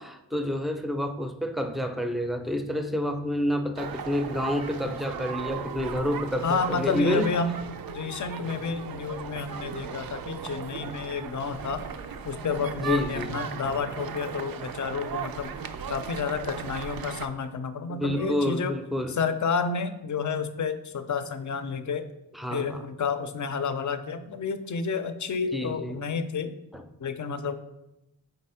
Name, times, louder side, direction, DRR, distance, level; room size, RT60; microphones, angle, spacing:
voice 1, 0.0-7.3 12.7-13.4 17.9-19.2 22.3-22.8 25.5-26.0 26.7-26.8, left 1 dB, ahead, 6 dB, 0.5 m, -29 dB
sound 1, 3.8-17.3, right 6 dB, 75° right, 0.5 m, -37 dB
voice 2, 6.4-11.8 12.2-15.5 15.9-18.8 19.1-22.1 22.5-26.6 27.0-27.6, left 5 dB, 55° left, 11 dB, 0.5 m, -30 dB
4.2 x 4.0 x 5.5 m, 0.92 s
wide cardioid pair, 100°, 36 cm